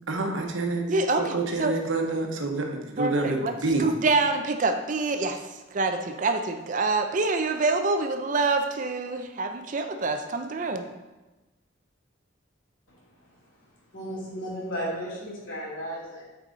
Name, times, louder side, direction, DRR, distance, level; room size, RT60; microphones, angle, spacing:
voice 1, 0.1-0.8 1.2-3.8, right 3 dB, 80° right, 1.0 m, -27 dB
voice 2, 0.9-1.7 3.0-5.4 5.7-10.9, right 3 dB, 40° right, 0.4 m, -26 dB
voice 3, 12.9-16.2, equal, 75° left, 2.5 m, -35 dB
8.3 x 4.7 x 3.9 m
head